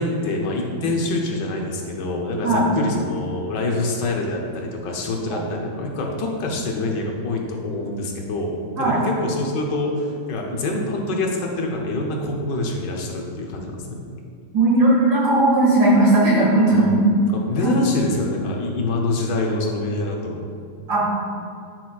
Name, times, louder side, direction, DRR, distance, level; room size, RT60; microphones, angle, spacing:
voice 1, 0.0-14.0 16.7-20.4, left 2 dB, 70° left, 0 dB, 1.5 m, -26 dB
voice 2, 14.5-17.0 17.6-17.7 20.9-21.1, right 2 dB, 70° right, -6 dB, 2.5 m, -17 dB
9.1 x 6.1 x 2.3 m, 2.3 s
omnidirectional pair, 2.1 m